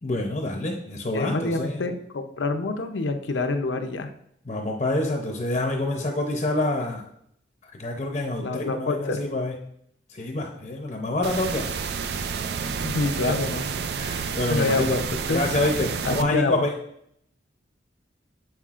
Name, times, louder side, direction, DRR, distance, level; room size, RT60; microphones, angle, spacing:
voice 1, 0.0-1.8 4.5-7.0 7.6-9.6 10.1-11.7 13.3-13.4 14.0-15.0 15.3-16.7, left 2 dB, 35° left, 2 dB, 0.6 m, -27 dB
voice 2, 1.1-4.1 8.4-9.2 12.8-13.7 14.5-15.4 16.0-16.6, left 3 dB, 85° left, 7 dB, 0.6 m, -27 dB
sound 1, 11.2-16.2, right 5 dB, 60° right, 0.4 m, -30 dB
7.4 x 5.7 x 2.4 m, 0.71 s
head